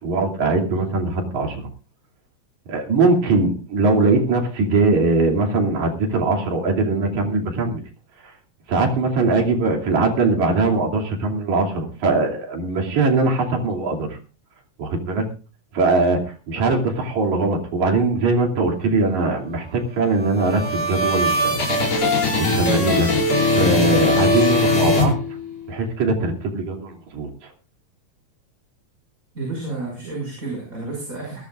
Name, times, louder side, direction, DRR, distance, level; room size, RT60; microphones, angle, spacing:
voice 1, 0.0-1.6 2.7-7.8 8.2-8.3 8.7-14.2 14.8-15.3 15.7-16.2 16.5-21.6 22.4-23.1 23.5-25.1 25.7-27.5, right 3 dB, 75° right, 2 dB, 4.2 m, -21 dB
sound 1, 20.1-25.7, left 2 dB, 55° left, 6.6 m, -20 dB
voice 2, 29.3-31.4, right 3 dB, 25° right, -1 dB, 6.3 m, -30 dB
21.0 x 15.5 x 2.5 m, 0.36 s
omnidirectional pair, 3.3 m